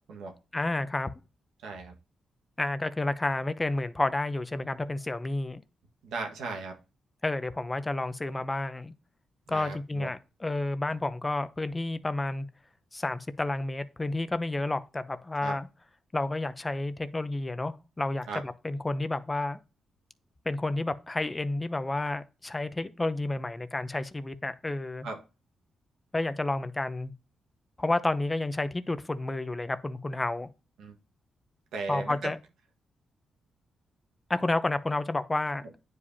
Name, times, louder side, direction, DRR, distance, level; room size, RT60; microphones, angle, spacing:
voice 1, 0.5-1.1 2.6-5.6 7.2-8.9 9.5-12.5 12.9-15.7 16.1-19.6 20.5-25.1 26.1-27.1 27.8-30.5 31.9-32.4 34.3-35.6, left 2 dB, 20° left, 0.7 m, -30 dB
voice 2, 1.6-1.9 6.0-6.8 9.5-10.1 15.4-15.6 18.3-18.4 25.0-25.2 30.8-30.9 31.7-32.3, right 3 dB, 85° right, 1.6 m, -36 dB
9.4 x 4.9 x 2.8 m
cardioid pair, 70°, 0 cm